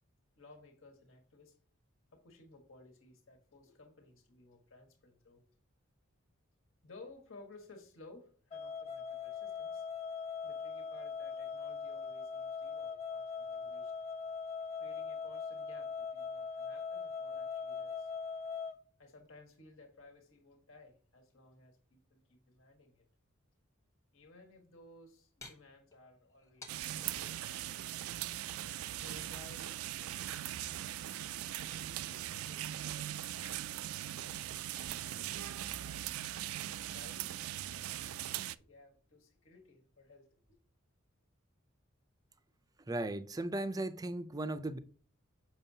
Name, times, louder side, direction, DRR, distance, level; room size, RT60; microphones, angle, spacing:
voice 1, 0.4-1.6 2.1-5.4 6.8-9.9 10.1-13.9 14.8-18.1 19.0-23.0 24.1-27.4 28.9-30.9 31.2-32.7 32.9-34.5 34.8-36.2 36.9-40.6, left 2 dB, 70° left, 1.6 m, -58 dB
sound 1, 8.5-18.7, left 5 dB, 30° left, 0.7 m, -41 dB
sound 2, 25.4-27.2 29.0-30.1 32.0-33.2 33.6-35.8, left 3 dB, 15° left, 1.1 m, -59 dB
sound 3, 26.7-38.6, right 12 dB, 90° right, 0.4 m, -40 dB
voice 2, 42.9-44.8, right 2 dB, 15° right, 0.4 m, -36 dB
7.1 x 6.0 x 2.8 m
head